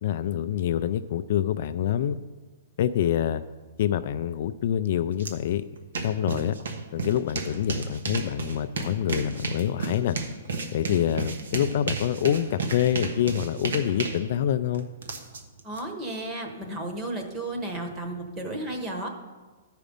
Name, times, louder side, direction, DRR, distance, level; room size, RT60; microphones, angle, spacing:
voice 1, 0.0-2.2 2.8-3.4 3.8-5.6 6.0-6.5 6.9-10.2 10.7-14.9, left 10 dB, 45° left, 11 dB, 0.3 m, -26 dB
sound 1, 5.2-5.3 5.6-15.8, right 3 dB, 85° right, 1.2 m, -33 dB
voice 2, 15.6-19.1, right 1 dB, 15° right, 4 dB, 1.0 m, -33 dB
13.0 x 5.0 x 5.2 m, 1.3 s
hypercardioid pair, 170°, 0 cm